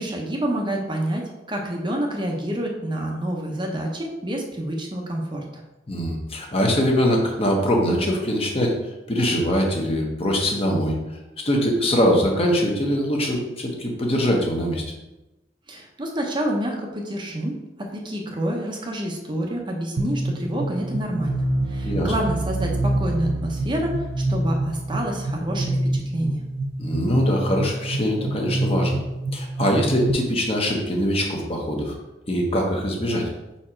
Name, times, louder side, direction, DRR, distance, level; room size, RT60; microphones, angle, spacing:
voice 1, 0.0-5.6 15.7-26.4, right 1 dB, 25° right, 0 dB, 0.7 m, -28 dB
voice 2, 5.9-11.0 11.4-14.8 21.8-22.1 26.8-29.0 29.3-32.0 32.3-33.3, equal, 30° left, 0 dB, 1.0 m, -22 dB
sound 1, 20.0-30.1, right 1 dB, 80° right, 0.6 m, -26 dB
5.0 x 4.3 x 4.4 m, 0.98 s
head